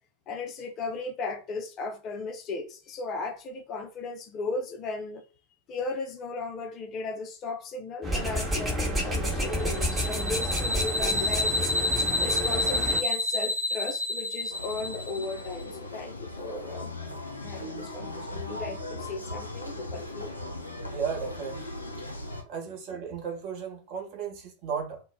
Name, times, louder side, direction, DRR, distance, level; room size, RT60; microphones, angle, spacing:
voice 1, 0.3-5.2 5.7-11.7 12.2-17.1 17.4-20.3, left 3 dB, 35° left, 0.5 m, -36 dB
sound 1, 8.0-13.0, equal, 15° right, 0.9 m, -29 dB
sound 2, 9.6-15.5, left 2 dB, 80° right, 0.5 m, -29 dB
sound 3, 14.5-22.4, left 1 dB, 85° left, 0.5 m, -38 dB
voice 2, 20.9-21.8 22.4-25.0, right 6 dB, 45° right, 0.9 m, -35 dB
2.2 x 2.0 x 3.3 m
figure-of-eight pair, 90°, 0 cm